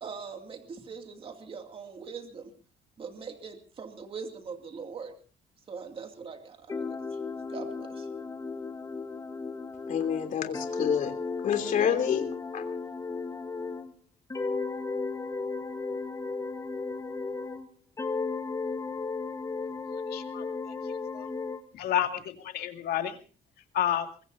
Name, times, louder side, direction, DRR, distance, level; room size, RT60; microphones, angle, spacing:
voice 1, 0.0-2.5 3.0-5.1 5.7-7.0 7.5-8.1, right 5 dB, 35° right, 2.4 m, -41 dB
sound 1, 6.7-13.9 14.3-17.7 18.0-21.6, left 4 dB, 20° left, 1.4 m, -35 dB
voice 2, 9.9-11.1 11.4-12.3 12.5-12.6, left 8 dB, 50° left, 3.0 m, -28 dB
voice 3, 20.1-20.4 21.1-21.3 21.7-23.2 23.7-24.1, left 11 dB, 70° left, 2.2 m, -29 dB
24.0 x 22.0 x 2.7 m
cardioid pair, 160°, 17 cm